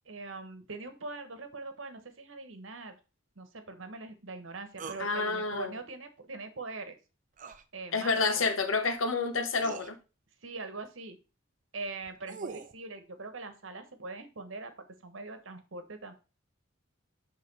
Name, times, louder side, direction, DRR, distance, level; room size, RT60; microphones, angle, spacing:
voice 1, 0.0-3.0 3.3-7.0 7.7-8.2 10.4-11.2 11.7-14.7 15.0-16.1, right 3 dB, 75° right, 1.2 m, -42 dB
sound 1, 4.8-5.1 7.4-7.6 9.0-9.1 9.6-9.9 11.9-12.8, right 4 dB, 40° right, 0.6 m, -42 dB
voice 2, 5.0-5.7 7.9-10.0, left 4 dB, 85° left, 1.1 m, -29 dB
6.6 x 3.8 x 5.4 m
head